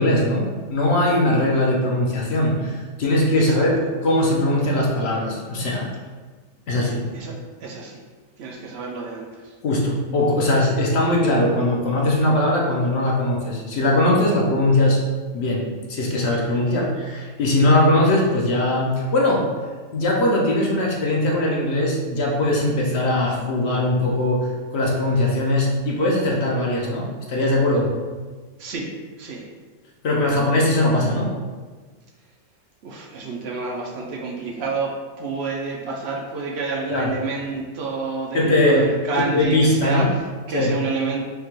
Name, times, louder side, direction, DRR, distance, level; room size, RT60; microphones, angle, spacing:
voice 1, 0.0-5.9 6.7-7.1 9.6-15.0 15.3-19.5 19.9-27.9 30.0-31.3 36.9-37.1 38.3-38.9 39.3-40.1 40.5-40.7, left 1 dB, 65° left, -2 dB, 0.9 m, -20 dB
voice 2, 7.6-8.0 8.4-9.5 28.6-28.9 29.2-29.5 32.8-41.2, right 4 dB, 65° right, -1 dB, 0.7 m, -29 dB
4.9 x 2.2 x 3.0 m, 1.4 s
omnidirectional pair, 1.3 m